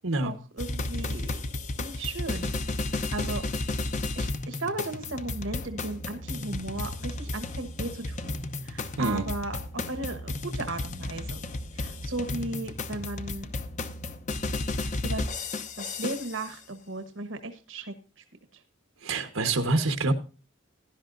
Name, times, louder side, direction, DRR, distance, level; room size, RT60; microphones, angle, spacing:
voice 1, 0.2-1.4 1.8-2.5 2.9-3.4 4.1-11.4 11.7-13.5 14.7-15.2 15.8-18.2 18.5-18.6, right 2 dB, 70° right, 7 dB, 1.2 m, -36 dB
sound 1, 0.6-16.5, left 2 dB, 35° left, 0.7 m, -33 dB
voice 2, 19.0-20.1, right 2 dB, 85° right, 7 dB, 1.4 m, -26 dB
16.0 x 11.5 x 2.6 m, 0.34 s
head